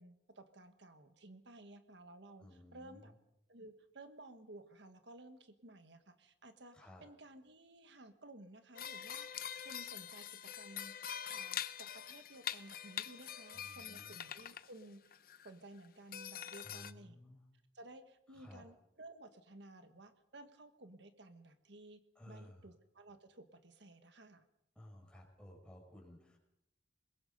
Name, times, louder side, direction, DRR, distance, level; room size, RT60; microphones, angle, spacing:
voice 1, 0.0-3.1 3.5-10.9 11.3-15.2 15.4-17.1 17.7-22.0 22.3-24.4, right 2 dB, 70° right, 8 dB, 1.5 m, -56 dB
voice 2, 2.4-3.1 6.7-7.0 13.5-14.1 16.6-17.4 18.3-18.6 22.1-22.7 24.7-26.4, left 1 dB, 5° left, 0 dB, 5.2 m, -56 dB
sound 1, 8.7-14.7 15.1-15.5 15.8-15.9 16.1-16.9, left 10 dB, 50° left, 0.8 m, -44 dB
26.0 x 21.5 x 5.4 m, 0.79 s
head